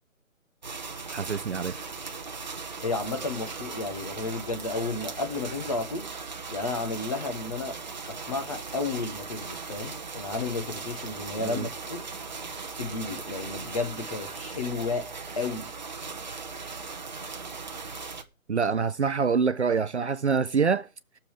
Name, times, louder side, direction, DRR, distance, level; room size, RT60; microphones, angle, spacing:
sound 1, 0.6-18.2, right 4 dB, 30° right, 0.9 m, -38 dB
voice 1, 1.1-1.8 11.4-11.7 18.5-20.9, right 5 dB, 55° right, 0.6 m, -26 dB
voice 2, 2.8-6.1 6.5-7.7 8.1-12.0 12.8-15.1 15.4-15.7, left 3 dB, 25° left, 1.2 m, -32 dB
20.5 x 7.0 x 3.6 m
figure-of-eight pair, 165°, 42 cm